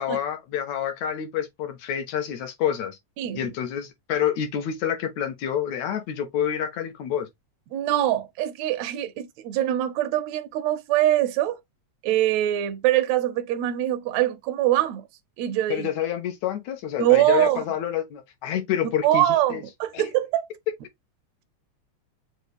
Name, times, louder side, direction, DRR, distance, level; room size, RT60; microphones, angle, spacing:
voice 1, 0.0-3.0 3.3-7.3 15.7-19.2 19.5-19.6 19.9-20.0, left 9 dB, 75° left, 2.3 m, -28 dB
voice 2, 7.7-11.6 12.0-15.0 15.4-15.9 17.0-17.6 19.0-20.5, right 13 dB, 80° right, 1.7 m, -23 dB
6.3 x 2.4 x 3.4 m
omnidirectional pair, 3.3 m